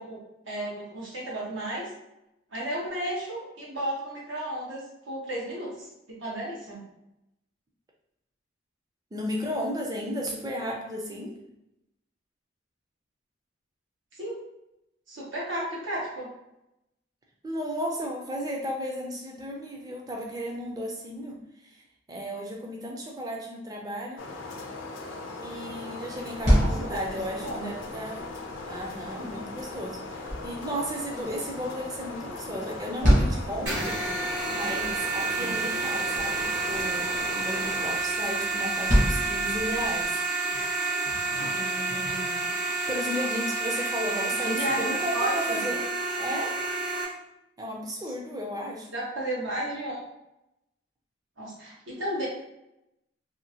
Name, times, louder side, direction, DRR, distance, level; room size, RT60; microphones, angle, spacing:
voice 1, 0.0-1.8 2.5-6.8 14.2-14.4 15.1-16.3 26.5-27.7 44.1-45.6 48.0-48.1 48.9-50.0 51.4-52.3, right 1 dB, 85° right, -6 dB, 1.2 m, -33 dB
voice 2, 9.1-11.4 17.4-21.8 22.1-24.3 25.4-28.3 28.7-34.0 34.5-40.2 41.5-42.5 42.9-45.9 46.2-46.7 47.6-48.9, equal, 20° right, 0 dB, 0.4 m, -34 dB
sound 1, 24.2-38.0, left 3 dB, 85° left, 0.5 m, -39 dB
sound 2, 26.2-40.1, equal, 40° right, 1.0 m, -30 dB
sound 3, 33.7-47.0, right 3 dB, 65° right, 1.0 m, -29 dB
2.8 x 2.6 x 2.7 m, 0.87 s
head